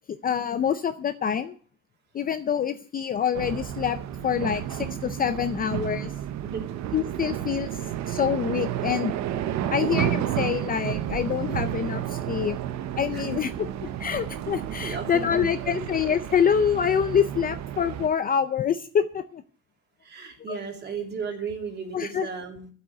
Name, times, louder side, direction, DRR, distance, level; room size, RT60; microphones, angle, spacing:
voice 1, 0.2-1.6 2.1-4.0 4.2-6.1 6.9-7.8 8.1-9.1 9.7-12.6 13.0-13.5 13.8-19.4 20.5-20.6 21.9-22.3, left 8 dB, 30° left, 10 dB, 0.5 m, -26 dB
sound 1, 3.3-18.1, right 11 dB, 60° right, 0.9 m, -31 dB
voice 2, 13.1-13.4 14.8-15.8 20.0-22.7, right 5 dB, 30° right, 2 dB, 3.2 m, -35 dB
12.0 x 8.4 x 7.9 m, 0.43 s
cardioid pair, 175°, 32 cm